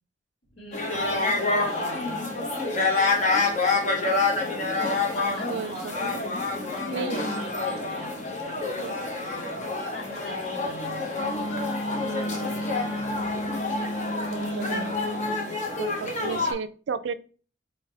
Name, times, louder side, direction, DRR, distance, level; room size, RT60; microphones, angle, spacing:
voice 1, 0.5-2.3 5.1-8.8 9.1-11.4 14.2-15.4, equal, 75° left, -4 dB, 2.1 m, -42 dB
sound 1, 0.7-16.5, left 3 dB, 40° left, 0.9 m, -28 dB
voice 2, 5.5-6.2 6.9-7.4 8.8-9.0 12.0-12.6 14.3-14.9 15.8-17.1, right 5 dB, 85° right, 13 dB, 0.4 m, -34 dB
Wind instrument woodwind instrument, 11.2-15.6, equal, 25° left, 0.5 m, -33 dB
4.3 x 3.5 x 3.2 m, 0.38 s
head